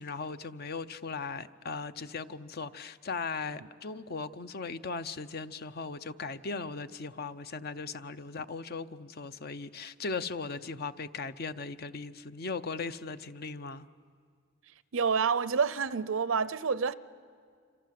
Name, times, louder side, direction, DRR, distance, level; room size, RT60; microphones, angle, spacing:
voice 1, 0.0-13.9, left 4 dB, 50° left, 0.7 m, -38 dB
voice 2, 14.9-16.9, right 5 dB, 75° right, 0.7 m, -28 dB
26.5 x 26.0 x 7.6 m
head